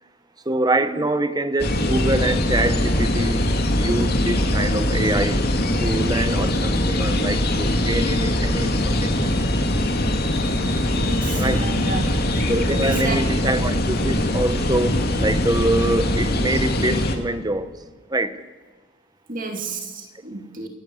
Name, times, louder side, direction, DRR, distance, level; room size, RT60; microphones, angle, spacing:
voice 1, 0.4-3.4 3.7-5.4 5.8-9.3 11.4-11.7 12.5-17.7 18.1-18.4, right 1 dB, 20° right, 1.1 m, -24 dB
sound 1, 1.6-17.2, left 1 dB, 50° left, 2.5 m, -22 dB
Piano, 1.8-13.1, equal, 90° left, 3.7 m, -31 dB
voice 2, 11.0-12.0 12.8-13.2 19.3-20.7, right 3 dB, 40° right, 2.6 m, -31 dB
28.5 x 14.5 x 8.5 m
head